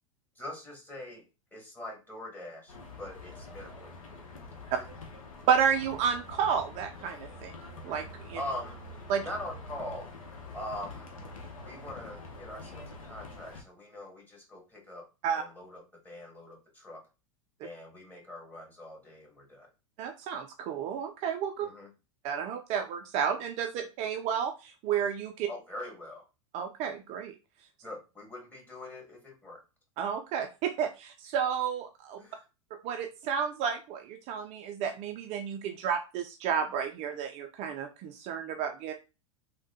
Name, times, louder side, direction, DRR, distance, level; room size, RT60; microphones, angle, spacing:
voice 1, 0.3-4.2 8.4-8.8 9.2-10.1 10.5-11.2 11.6-15.1 15.3-17.0 17.6-19.7 21.6-21.9 25.5-26.3 27.8-29.6 32.2-32.4, left 1 dB, 10° left, -1 dB, 1.3 m, -43 dB
sound 1, 2.7-13.6, left 2 dB, 85° left, 0.7 m, -46 dB
voice 2, 5.5-7.5 7.8-8.4 9.1-9.2 15.2-15.4 20.0-21.7 22.2-25.5 26.5-27.3 30.0-32.2 32.8-38.9, right 7 dB, 40° right, 5 dB, 0.4 m, -31 dB
3.2 x 2.1 x 2.7 m, 0.29 s
hypercardioid pair, 95°, 17 cm